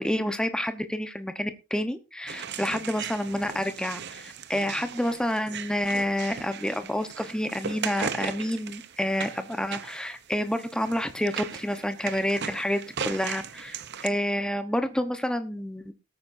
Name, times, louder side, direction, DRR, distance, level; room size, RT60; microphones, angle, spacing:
voice 1, 0.0-15.9, equal, 5° left, 8 dB, 0.9 m, -29 dB
sound 1, 2.3-14.1, right 7 dB, 50° right, 0.7 m, -38 dB
19.0 x 8.7 x 2.6 m, 0.28 s
head